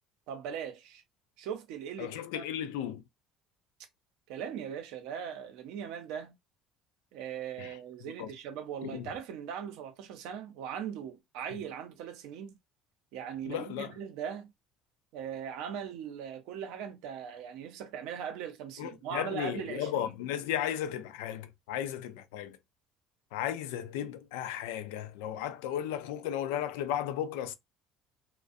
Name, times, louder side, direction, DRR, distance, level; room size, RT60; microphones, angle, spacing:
voice 1, 0.3-1.0 1.4-2.4 4.3-6.3 7.1-12.6 13.1-14.5 15.1-20.1, right 8 dB, 80° right, 0.6 m, -39 dB
voice 2, 2.0-3.0 7.6-7.8 8.2-8.3 8.8-9.1 13.5-13.9 18.8-22.6 23.3-27.5, left 10 dB, 90° left, 0.3 m, -35 dB
2.4 x 2.0 x 2.5 m
supercardioid pair, 100°, 0 cm